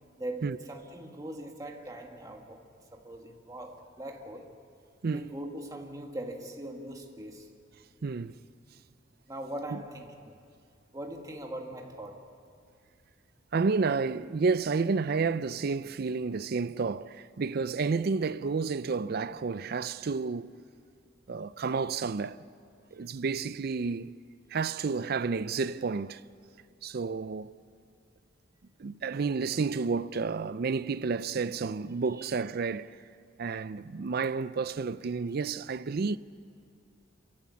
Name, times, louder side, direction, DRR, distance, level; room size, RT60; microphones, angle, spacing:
voice 1, 0.2-4.5 5.0-7.5 9.3-10.4 10.9-12.3 32.2-32.3, right 1 dB, 15° right, 1.7 m, -41 dB
voice 2, 8.0-8.4 9.7-9.8 13.5-20.5 21.3-22.5 22.9-24.1 24.5-26.2 26.8-27.6 28.8-33.0 33.4-36.2, right 4 dB, 50° right, 0.4 m, -30 dB
28.0 x 14.5 x 8.4 m
head